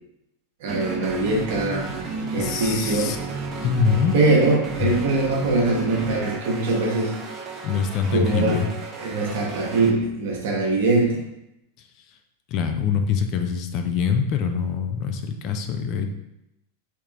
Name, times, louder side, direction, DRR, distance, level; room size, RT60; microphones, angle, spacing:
voice 1, 0.6-1.9 2.3-3.1 4.1-7.1 8.1-8.6 9.0-11.2, right 2 dB, 55° right, 0 dB, 0.8 m, -22 dB
sound 1, 0.7-9.9, right 4 dB, 25° right, 0.5 m, -33 dB
voice 2, 2.2-3.2 3.6-4.2 4.8-4.9 7.6-8.7 11.8-11.9 12.5-16.1, left 6 dB, 40° left, 6 dB, 0.3 m, -24 dB
3.4 x 2.9 x 3.1 m, 0.87 s
figure-of-eight pair, 90°, 0 cm